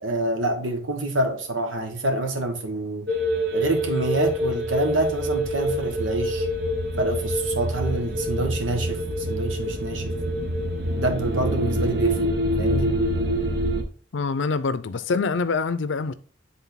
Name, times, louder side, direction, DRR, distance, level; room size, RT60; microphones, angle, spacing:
voice 1, 0.0-3.1 3.5-6.5 7.0-10.1 11.0-12.3 12.6-13.0, right 2 dB, 90° right, 1.4 m, -27 dB
sound 1, 3.1-13.8, equal, 55° right, 0.9 m, -26 dB
voice 2, 14.1-16.1, left 4 dB, 75° left, 0.5 m, -25 dB
8.2 x 3.8 x 4.1 m
head